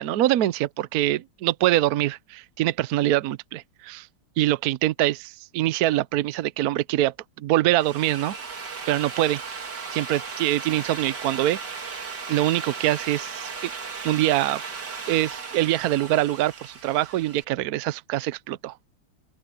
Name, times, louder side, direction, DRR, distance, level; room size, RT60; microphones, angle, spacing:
voice 1, 0.0-4.1 4.4-8.4 8.9-9.4 9.9-11.9 12.3-13.7 14.0-14.6 15.1-18.7, right 14 dB, 80° right, 0.8 m, -24 dB
Drill, 7.6-17.4, right 5 dB, 50° right, 2.9 m, -36 dB
open air
omnidirectional pair, 2.4 m